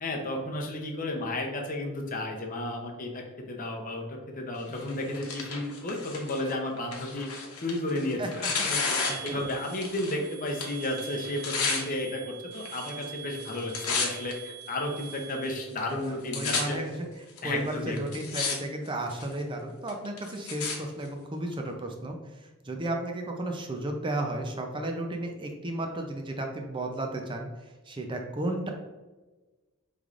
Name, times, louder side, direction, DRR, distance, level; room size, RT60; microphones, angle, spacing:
voice 1, 0.0-7.3 7.6-8.8 9.2-16.8 17.4-18.0, left 1 dB, 40° left, 1 dB, 0.7 m, -33 dB
Tearing, 4.7-10.2 10.5-11.8 12.6-13.1 13.4-14.3 15.0-15.1 15.8-16.6 17.4-17.5 18.0-18.6 18.9-19.3 19.9-20.8 21.5-21.6, left 4 dB, 80° left, 0.9 m, -32 dB
sound 1, 9.0-15.5, right 8 dB, 60° right, 0.9 m, -44 dB
voice 2, 15.8-17.1 17.4-22.2 22.7-27.5 27.9-28.7, right 1 dB, 20° right, 3 dB, 0.5 m, -33 dB
5.2 x 3.2 x 2.4 m, 1.2 s
head